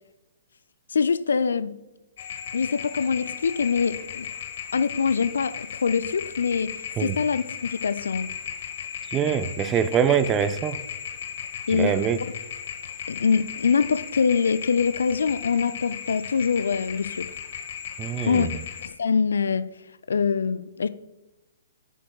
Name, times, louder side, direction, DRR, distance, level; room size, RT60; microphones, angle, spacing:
voice 1, 0.9-1.8 2.5-4.3 4.7-8.3 11.7-12.2 13.1-17.3 18.2-19.7 20.1-20.9, left 5 dB, 65° left, 0.5 m, -24 dB
sound 1, 2.2-18.9, left 8 dB, 50° left, 1.3 m, -36 dB
voice 2, 9.1-10.8 11.7-12.2 18.0-18.5, right 8 dB, 20° right, 0.5 m, -24 dB
11.0 x 9.9 x 2.4 m
figure-of-eight pair, 120°, 0 cm